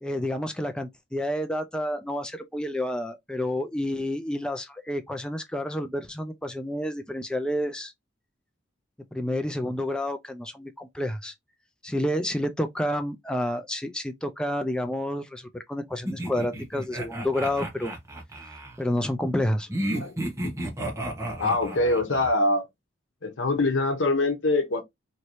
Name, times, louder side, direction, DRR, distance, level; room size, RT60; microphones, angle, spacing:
voice 1, 0.0-7.9 9.1-11.3 11.8-17.9 18.8-19.7, left 1 dB, 5° left, 0.3 m, -29 dB
sound 1, 16.1-18.8 19.7-22.3, right 1 dB, 15° right, 1.0 m, -32 dB
voice 2, 19.9-20.5 21.4-22.6 23.2-24.8, left 2 dB, 75° left, 0.8 m, -24 dB
3.1 x 2.6 x 2.9 m
head